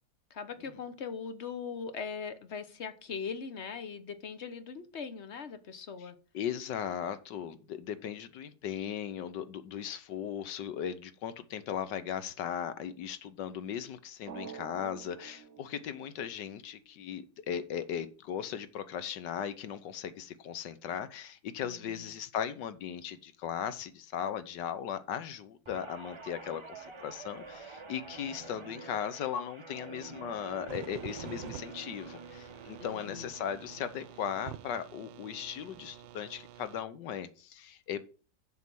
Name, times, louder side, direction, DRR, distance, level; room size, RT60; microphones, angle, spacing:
voice 1, 0.3-6.2 21.6-22.1 28.4-28.6 32.8-33.3, left 6 dB, 45° left, 10 dB, 1.0 m, -40 dB
voice 2, 6.3-38.0, left 9 dB, 75° left, 13 dB, 1.4 m, -37 dB
Drum, 14.3-16.8, right 7 dB, 65° right, 0.7 m, -48 dB
Guitar, 25.7-34.2 34.6-35.0, right 4 dB, 25° right, 0.6 m, -48 dB
sound 1, 30.7-36.8, right 12 dB, 90° right, 1.4 m, -48 dB
7.4 x 6.0 x 6.1 m, 0.37 s
omnidirectional pair, 2.0 m